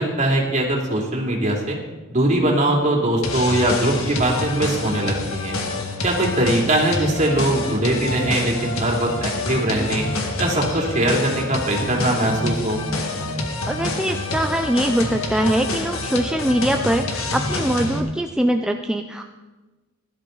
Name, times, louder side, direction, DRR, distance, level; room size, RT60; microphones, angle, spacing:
voice 1, 0.0-1.8 2.1-5.6 6.0-10.0 10.4-12.8, right 1 dB, 35° right, -1 dB, 2.9 m, -21 dB
sound 1, 3.2-18.0, left 2 dB, 80° left, 1.9 m, -27 dB
voice 2, 13.7-19.2, right 1 dB, 5° right, 4 dB, 0.5 m, -22 dB
17.0 x 12.0 x 4.0 m, 1.2 s
head